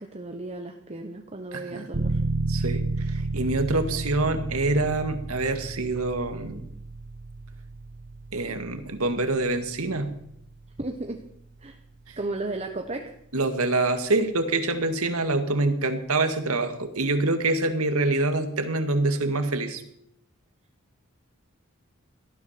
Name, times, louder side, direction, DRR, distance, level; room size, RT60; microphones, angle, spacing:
voice 1, 0.0-2.2 10.8-11.2 11.6-11.8 12.2-13.1, right 2 dB, 30° right, 4 dB, 1.1 m, -34 dB
voice 2, 1.5-1.9 2.5-6.6 8.3-10.1 12.1-12.2 13.3-19.8, right 2 dB, 85° right, 7 dB, 2.0 m, -26 dB
sound 1, 1.9-12.5, right 2 dB, 55° right, 1.1 m, -33 dB
18.0 x 13.5 x 5.9 m, 0.74 s
head